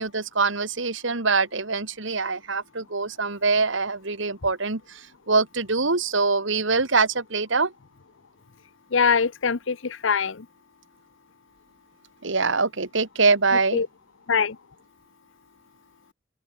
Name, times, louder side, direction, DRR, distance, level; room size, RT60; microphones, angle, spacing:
voice 1, 0.0-5.0 5.3-7.7 12.2-13.8, right 4 dB, 65° right, 2.0 m, -24 dB
voice 2, 8.9-10.4 13.7-13.9 14.3-14.6, left 5 dB, 65° left, 0.7 m, -23 dB
open air
head